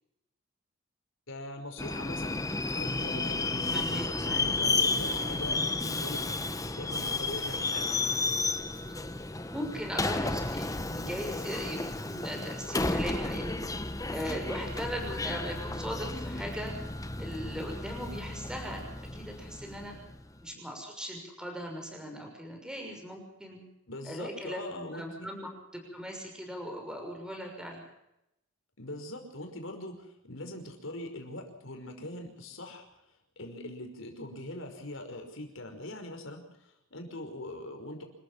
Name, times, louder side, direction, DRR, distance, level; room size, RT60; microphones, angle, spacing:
voice 1, 1.3-8.0 20.5-20.7 23.9-25.3 28.8-32.9 33.4-38.0, left 1 dB, 65° left, 5 dB, 5.5 m, -42 dB
Subway metro underground, 1.8-20.2, left 3 dB, 15° left, 1.1 m, -32 dB
voice 2, 3.7-4.5 9.5-13.6 14.1-16.7 17.2-18.8 19.1-19.9 20.4-23.6 24.0-27.8, equal, 5° right, 2 dB, 6.2 m, -39 dB
27.5 x 14.5 x 7.2 m, 0.85 s
head